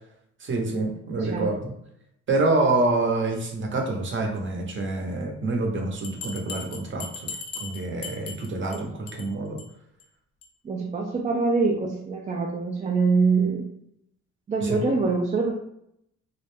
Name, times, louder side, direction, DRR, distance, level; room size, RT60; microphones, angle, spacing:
voice 1, 0.4-1.7 2.3-7.3 7.6-9.6 14.6-14.8, right 2 dB, 40° right, 2 dB, 0.7 m, -27 dB
voice 2, 1.2-1.5 8.7-8.8 10.6-13.7 14.5-15.5, right 4 dB, 25° right, -1 dB, 0.4 m, -24 dB
Bell, 6.0-8.8 9.1-9.3 9.6-9.7 10.0-10.1 10.4-10.5, left 4 dB, 50° left, 0.6 m, -37 dB
2.3 x 2.1 x 3.2 m, 0.74 s
cardioid pair, 90°, 30 cm